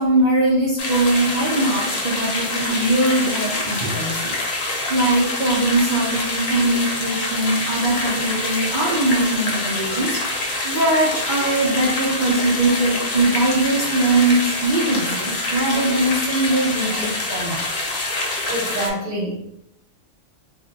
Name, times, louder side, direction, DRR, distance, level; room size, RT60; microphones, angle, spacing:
voice 1, 0.0-17.6, right 2 dB, 45° right, -6 dB, 0.7 m, -21 dB
sound 1, 0.8-18.9, left 2 dB, 55° left, 0.8 m, -26 dB
voice 2, 18.5-19.5, right 1 dB, 75° right, -2 dB, 1.3 m, -26 dB
2.6 x 2.1 x 3.8 m, 0.78 s
omnidirectional pair, 1.3 m